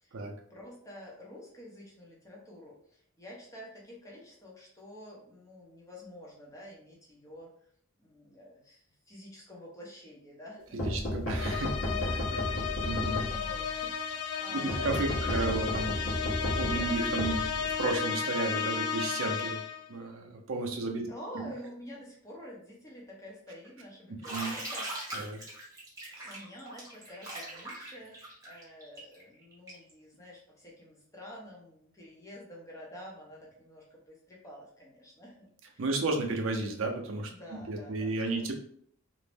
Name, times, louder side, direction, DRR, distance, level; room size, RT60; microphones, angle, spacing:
voice 1, 0.0-7.5 8.0-11.4 11.8-15.2 16.7-16.9 21.0-24.9 26.2-35.8 37.3-38.5, left 1 dB, 15° left, -3 dB, 0.7 m, -49 dB
sound 1, 10.8-13.7 14.7-18.0, equal, 65° left, 0.9 m, -34 dB
voice 2, 10.8-11.7 12.8-13.3 14.5-16.0 16.5-19.6 19.9-21.0 24.3-24.5 25.1-25.4 26.1-26.3 35.8-38.5, right 2 dB, 60° right, 3 dB, 0.5 m, -33 dB
sound 2, 11.4-19.9, left 6 dB, 85° left, 0.4 m, -34 dB
Bathtub (filling or washing), 24.2-29.9, right 1 dB, 15° right, 0.9 m, -40 dB
2.5 x 2.0 x 3.3 m, 0.63 s
head